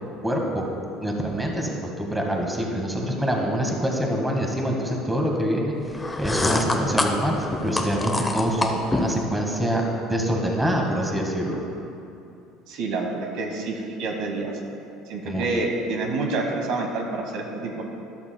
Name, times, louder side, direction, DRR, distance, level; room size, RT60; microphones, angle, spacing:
voice 1, 0.2-0.7 1.0-9.8 10.1-11.6 15.2-15.4, equal, 10° right, 0 dB, 1.6 m, -25 dB
sound 1, 5.9-9.2, left 2 dB, 15° left, 0.8 m, -26 dB
voice 2, 12.7-14.5 15.1-17.9, right 3 dB, 70° right, 2 dB, 1.3 m, -28 dB
13.0 x 11.0 x 2.2 m, 2.7 s
supercardioid pair, 95°, 0 cm